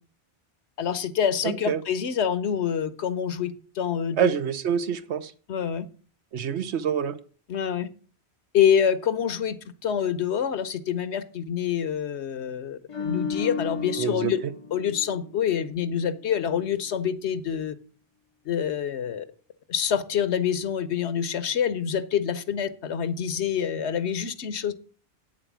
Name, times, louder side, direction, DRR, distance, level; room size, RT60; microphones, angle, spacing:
voice 1, 0.8-4.3 5.5-5.9 7.5-7.9 8.5-9.6 9.8-14.4 14.7-17.7 18.4-19.2 19.7-24.7, left 8 dB, 85° left, 1.1 m, -26 dB
voice 2, 1.4-1.8 4.2-5.3 6.3-7.2 14.0-14.3, right 8 dB, 85° right, 1.1 m, -26 dB
sound 1, 12.9-16.2 16.5-16.7, left 5 dB, 35° left, 0.6 m, -34 dB
8.8 x 7.4 x 6.1 m
omnidirectional pair, 1.1 m